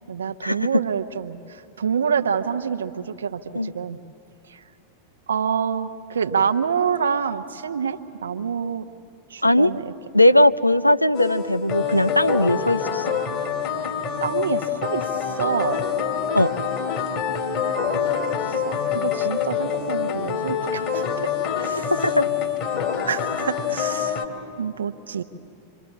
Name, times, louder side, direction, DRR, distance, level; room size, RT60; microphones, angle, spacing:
voice 1, 0.1-4.0 4.5-4.6 5.3-8.9 9.3-9.9 14.2-15.8 18.5-21.3 21.6-22.1 23.0-24.2 24.6-25.2, right 7 dB, 70° right, 9 dB, 1.0 m, -27 dB
voice 2, 10.1-13.2 16.3-16.6 22.2-22.3, left 1 dB, 90° left, 13 dB, 0.5 m, -18 dB
sound 1, 11.1-24.3, left 7 dB, 40° left, 2.5 m, -26 dB
25.5 x 25.5 x 7.5 m, 2.6 s
figure-of-eight pair, 90°, 0 cm